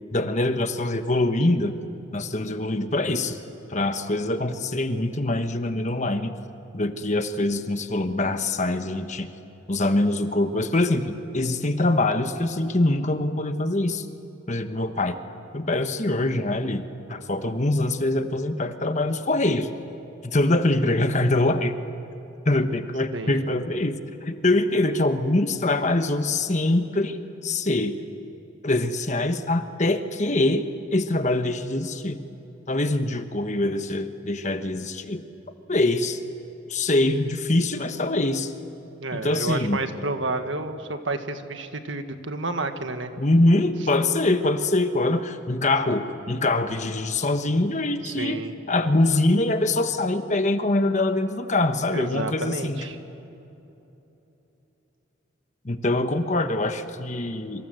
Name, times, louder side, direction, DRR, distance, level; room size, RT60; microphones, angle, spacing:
voice 1, 0.1-1.7 2.1-3.4 3.7-6.4 6.7-9.3 9.7-14.1 14.5-15.2 15.5-19.7 20.2-21.8 22.4-27.2 27.4-27.9 28.6-30.6 30.9-32.2 32.7-35.2 35.7-36.2 36.7-38.5 39.1-39.8 43.2-48.4 48.7-52.8 55.6-57.7, left 2 dB, 35° left, 8 dB, 1.2 m, -24 dB
voice 2, 23.1-23.4 39.0-43.1 48.0-48.5 51.9-53.0, right 2 dB, 70° right, 7 dB, 1.7 m, -30 dB
27.5 x 25.5 x 7.9 m, 3.0 s
head